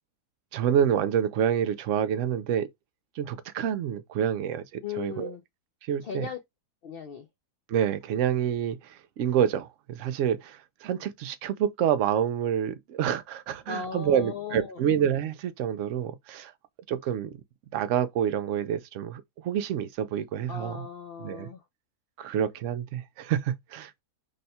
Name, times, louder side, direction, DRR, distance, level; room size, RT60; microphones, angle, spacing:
voice 1, 0.5-2.7 3.2-4.6 4.9-5.3 5.9-6.3 7.7-16.5 16.9-17.3 17.7-20.9 21.2-21.5 22.2-23.9, right 9 dB, 65° right, 0.8 m, -27 dB
voice 2, 4.8-5.4 6.0-6.4 6.8-7.3 13.7-14.8 20.5-21.6, left 6 dB, 75° left, 0.5 m, -37 dB
3.4 x 2.3 x 4.1 m
omnidirectional pair, 1.7 m